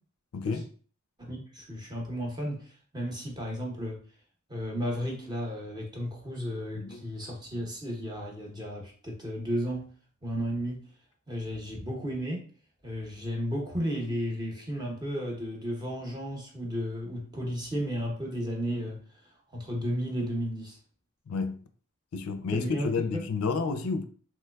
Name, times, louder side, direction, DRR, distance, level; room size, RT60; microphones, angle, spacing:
voice 1, 0.3-0.7 6.7-7.0 21.3-21.6 22.1-24.0, left 4 dB, 85° left, 0.4 m, -30 dB
voice 2, 1.2-4.0 4.5-9.9 10.2-10.8 11.3-12.5 12.8-19.0 19.5-20.8 22.5-23.2, equal, 20° right, 0.7 m, -33 dB
3.3 x 3.0 x 2.2 m
head